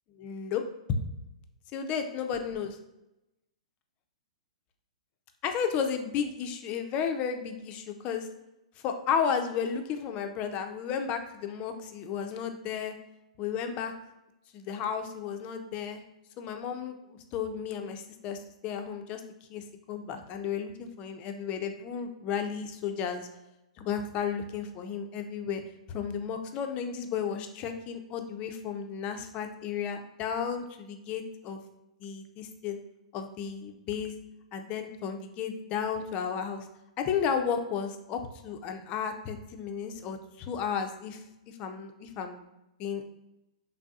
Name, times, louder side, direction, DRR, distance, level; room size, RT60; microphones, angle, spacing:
voice 1, 0.2-0.6 1.7-2.8 5.4-8.3 8.8-12.9 13.4-13.9 14.5-16.0 16.4-19.2 19.5-23.3 23.8-25.6 25.9-31.6 32.0-32.8 33.1-34.1 34.5-36.7 37.0-42.4 42.8-43.0, left 7 dB, 30° left, 6 dB, 0.4 m, -33 dB
3.3 x 2.6 x 2.3 m, 0.92 s
hypercardioid pair, 130°, 4 cm